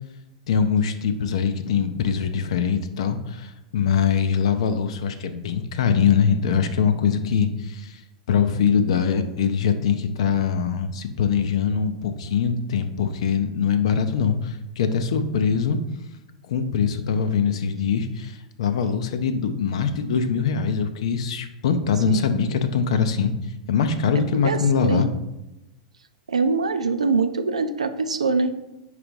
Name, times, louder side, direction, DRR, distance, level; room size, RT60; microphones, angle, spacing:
voice 1, 0.5-8.0 8.3-15.8 16.5-23.3 23.7-25.1, left 6 dB, 60° left, 9 dB, 0.7 m, -23 dB
voice 2, 22.1-22.5 24.3-25.0 26.3-28.5, right 4 dB, 80° right, 10 dB, 0.5 m, -23 dB
4.9 x 4.8 x 5.2 m, 0.93 s
figure-of-eight pair, 95°, 3 cm